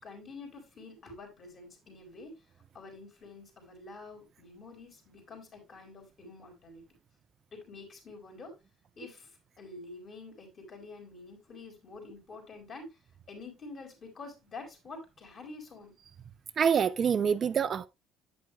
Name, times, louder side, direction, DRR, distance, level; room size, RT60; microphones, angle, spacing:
voice 1, 0.0-2.4 2.7-6.8 7.5-8.5 9.0-9.3 9.6-12.9 13.3-15.9, left 3 dB, 35° left, 4.2 m, -47 dB
voice 2, 16.6-17.9, right 7 dB, 35° right, 0.4 m, -26 dB
10.5 x 9.3 x 2.2 m
cardioid pair, 160°, 0 cm